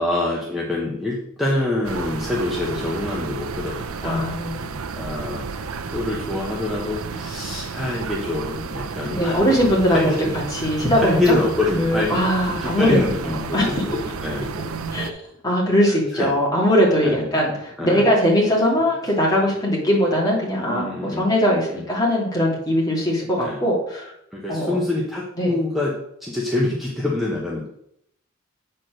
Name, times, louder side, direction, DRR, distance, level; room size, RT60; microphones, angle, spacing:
voice 1, 0.0-4.3 4.9-5.6 5.9-9.4 9.9-10.3 10.6-14.5 16.1-16.3 17.0-17.4 17.8-18.1 20.7-21.3 21.7-21.9 23.4-23.6 24.3-27.7, left 2 dB, ahead, -4 dB, 1.1 m, -26 dB
sound 1, 1.8-15.1, right 5 dB, 85° right, 0.6 m, -32 dB
voice 2, 4.0-4.7 9.0-10.1 10.5-11.2 11.7-13.7 14.9-15.2 15.4-24.1 24.5-24.8 25.4-25.5, equal, 20° left, -4 dB, 2.7 m, -20 dB
8.4 x 4.5 x 6.3 m, 0.74 s
head